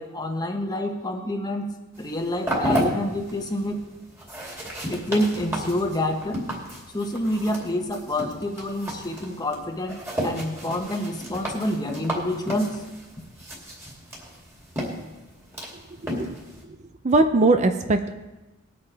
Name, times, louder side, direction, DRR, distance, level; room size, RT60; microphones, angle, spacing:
voice 1, 0.0-3.8 4.9-6.4 6.9-12.8, left 1 dB, 20° left, 4 dB, 1.2 m, -28 dB
sound 1, 1.9-16.6, equal, 10° right, 2.7 m, -33 dB
voice 2, 17.0-18.1, right 2 dB, 35° right, 8 dB, 0.5 m, -19 dB
20.0 x 8.6 x 3.4 m, 1.1 s
head